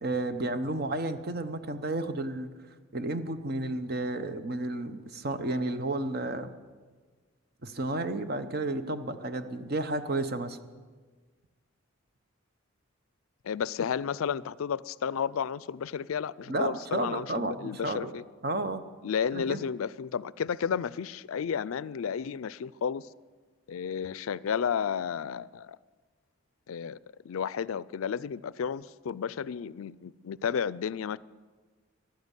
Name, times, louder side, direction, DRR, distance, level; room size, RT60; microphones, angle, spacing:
voice 1, 0.0-2.5 2.9-6.5 7.6-10.6 16.5-18.1 18.4-18.8 19.3-19.6, right 2 dB, 45° right, 9 dB, 0.9 m, -32 dB
voice 2, 13.4-18.2 19.0-23.1 23.7-25.8 26.7-27.0 27.2-31.2, left 7 dB, 85° left, 20 dB, 0.4 m, -32 dB
14.5 x 11.5 x 8.2 m, 1.4 s
head